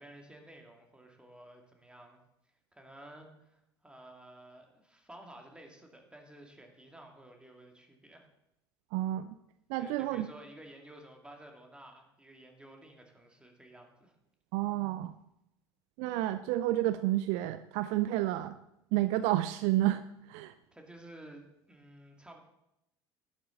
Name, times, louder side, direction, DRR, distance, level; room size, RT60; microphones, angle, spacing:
voice 1, 0.0-2.2 2.7-8.3 9.8-14.1 20.7-22.4, right 1 dB, 5° right, 2 dB, 2.3 m, -53 dB
voice 2, 8.9-9.3 9.7-10.3 14.5-15.1 16.0-18.6 18.9-20.0 20.3-20.5, right 15 dB, 55° right, 13 dB, 0.4 m, -30 dB
11.5 x 11.0 x 3.9 m, 0.85 s
figure-of-eight pair, 65°, 14 cm